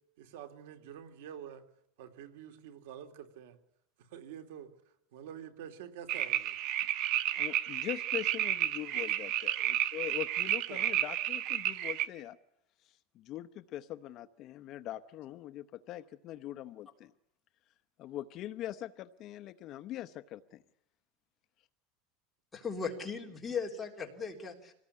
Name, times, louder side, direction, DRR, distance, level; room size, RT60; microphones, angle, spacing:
voice 1, 0.2-1.6 2.0-3.6 4.0-4.7 5.1-6.5 10.7-11.0, right 9 dB, 80° right, 6 dB, 3.0 m, -47 dB
sound 1, 6.1-12.1, right 12 dB, 45° right, 1.1 m, -32 dB
voice 2, 7.3-12.4 12.9-17.1 18.0-20.6, left 13 dB, 35° left, 12 dB, 0.8 m, -42 dB
voice 3, 22.5-24.7, left 5 dB, 10° left, 0 dB, 3.6 m, -37 dB
26.0 x 18.5 x 8.6 m, 0.82 s
supercardioid pair, 170°, 0 cm